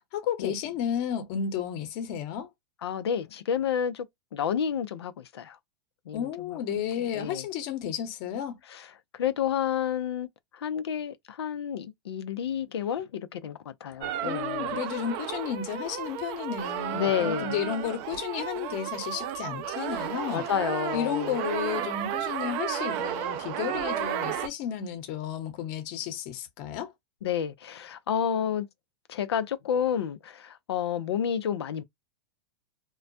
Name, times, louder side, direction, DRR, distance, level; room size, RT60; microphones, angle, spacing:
voice 1, 0.1-2.5 6.1-8.6 14.2-20.5 20.9-26.9, left 8 dB, 50° left, 1.0 m, -32 dB
voice 2, 2.8-4.1 4.3-5.6 6.1-6.6 7.0-7.5 8.7-8.9 9.1-10.3 10.5-14.8 16.9-17.6 20.3-21.4 27.2-28.7 29.1-31.8, left 8 dB, 90° left, 0.5 m, -30 dB
sound 1, 14.0-24.5, right 10 dB, 45° right, 0.5 m, -33 dB
2.2 x 2.2 x 2.6 m
hypercardioid pair, 130°, 13 cm